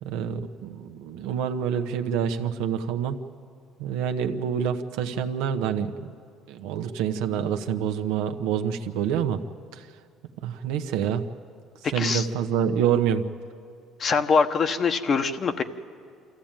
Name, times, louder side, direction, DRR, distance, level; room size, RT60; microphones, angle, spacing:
voice 1, 0.0-3.2 3.8-6.1 6.5-9.4 9.7-9.8 10.4-11.2 11.9-13.2, right 8 dB, 85° right, 7 dB, 1.0 m, -27 dB
voice 2, 11.8-12.3 14.0-15.6, left 5 dB, 45° left, 8 dB, 1.2 m, -23 dB
25.5 x 14.0 x 9.0 m, 2.3 s
supercardioid pair, 90°, 0 cm